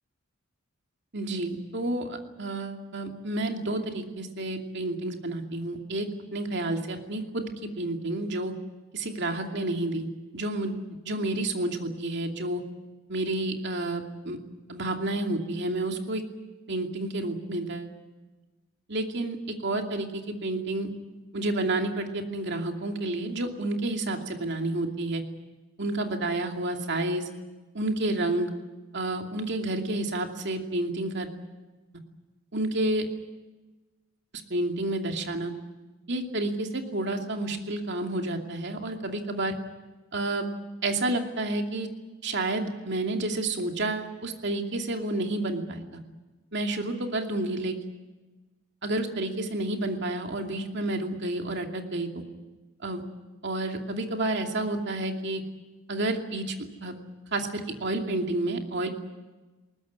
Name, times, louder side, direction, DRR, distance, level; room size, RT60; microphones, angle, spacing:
voice 1, 1.1-6.1 6.3-7.5 7.8-8.5 8.9-10.0 10.3-10.7 11.0-12.6 13.1-14.4 14.7-16.2 16.7-17.9 18.9-20.9 21.3-25.2 25.8-27.3 27.7-28.5 28.9-31.3 32.5-33.0 34.5-35.5 36.1-39.5 40.1-40.5 40.8-41.9 42.2-45.9 46.5-47.8 48.8-52.2 52.8-53.0 53.4-55.4 55.9-57.0 57.3-58.9, right 2 dB, 55° right, 3 dB, 2.7 m, -30 dB
21.0 x 19.0 x 9.7 m, 1.2 s
head